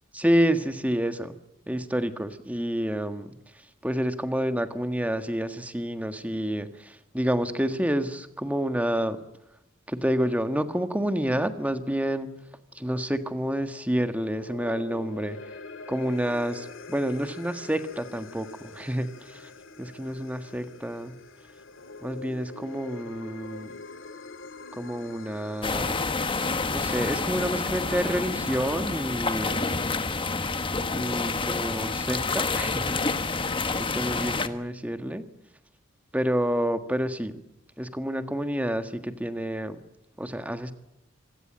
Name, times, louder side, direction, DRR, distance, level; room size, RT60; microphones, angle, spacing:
voice 1, 0.1-1.4 1.7-3.3 3.8-9.2 9.9-12.3 12.7-15.4 15.9-19.5 19.8-21.1 22.0-23.7 24.7-26.0 26.7-29.7 30.9-33.0 33.7-35.2 36.1-37.4 37.8-39.8 40.2-40.7, equal, 10° right, 9 dB, 1.6 m, -28 dB
sound 1, 14.2-30.6, left 3 dB, 70° left, 2.4 m, -45 dB
sound 2, 25.6-34.5, left 3 dB, 25° left, 1.3 m, -28 dB
26.0 x 16.5 x 9.0 m, 0.87 s
head